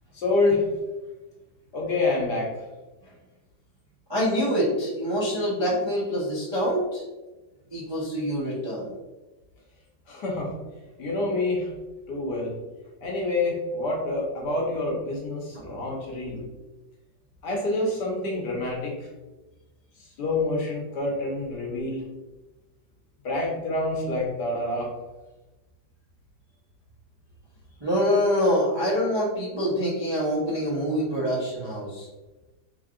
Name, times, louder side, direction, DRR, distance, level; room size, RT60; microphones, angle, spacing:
voice 1, 0.1-0.7 1.7-2.7 10.1-10.5 11.0-11.7 12.1-12.5 13.0-16.4 17.4-19.1 20.0-22.0 23.2-24.9, left 2 dB, 65° left, -2 dB, 1.4 m, -27 dB
voice 2, 4.1-7.0 7.7-8.9 15.5-15.8 27.8-32.1, equal, 35° right, -8 dB, 0.4 m, -25 dB
3.6 x 3.4 x 2.5 m, 1.1 s
omnidirectional pair, 2.2 m